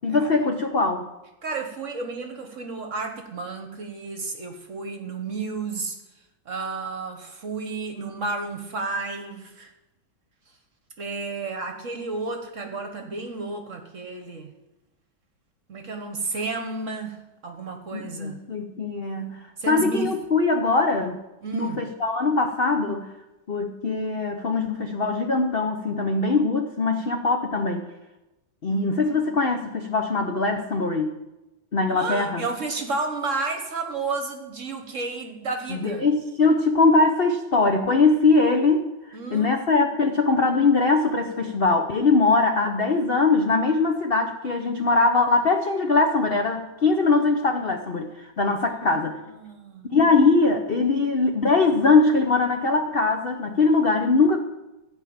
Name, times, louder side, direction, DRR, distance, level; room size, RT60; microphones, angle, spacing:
voice 1, 0.0-1.1 17.9-21.2 21.5-23.1 23.5-27.9 28.6-31.1 31.7-32.5 35.7-38.9 39.3-49.2 49.9-54.4, left 3 dB, 55° left, 4 dB, 0.6 m, -21 dB
voice 2, 1.4-6.0 6.4-9.7 11.0-14.5 15.7-18.4 19.6-20.1 21.4-21.8 28.7-29.3 31.9-36.1 39.1-39.5 48.9-49.0 49.3-49.9, right 3 dB, 45° right, 5 dB, 1.2 m, -32 dB
15.0 x 5.4 x 8.7 m, 0.99 s
omnidirectional pair, 2.2 m